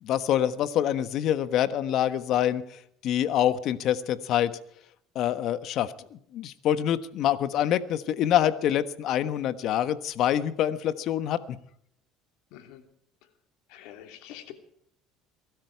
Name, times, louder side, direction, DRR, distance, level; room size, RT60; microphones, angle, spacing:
voice 1, 0.0-4.5 5.1-11.6, left 11 dB, 55° left, 13 dB, 1.3 m, -26 dB
voice 2, 12.5-12.8 13.7-14.5, left 12 dB, 75° left, 6 dB, 2.9 m, -45 dB
23.5 x 13.0 x 4.6 m, 0.68 s
supercardioid pair, 115°, 0 cm